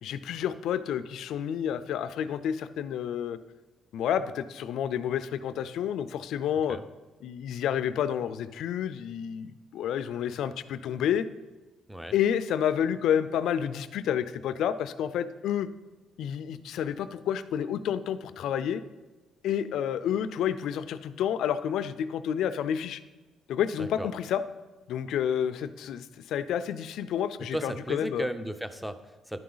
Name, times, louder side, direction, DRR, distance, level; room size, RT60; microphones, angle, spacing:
voice 1, 0.0-3.4 3.9-6.8 7.2-11.3 12.1-15.7 16.2-18.8 19.4-23.0 23.5-24.4 24.9-28.3, left 9 dB, 80° left, 13 dB, 0.4 m, -29 dB
voice 2, 27.5-29.4, equal, 5° right, 10 dB, 0.6 m, -35 dB
11.0 x 4.7 x 3.9 m, 1.2 s
cardioid pair, 90°, 0 cm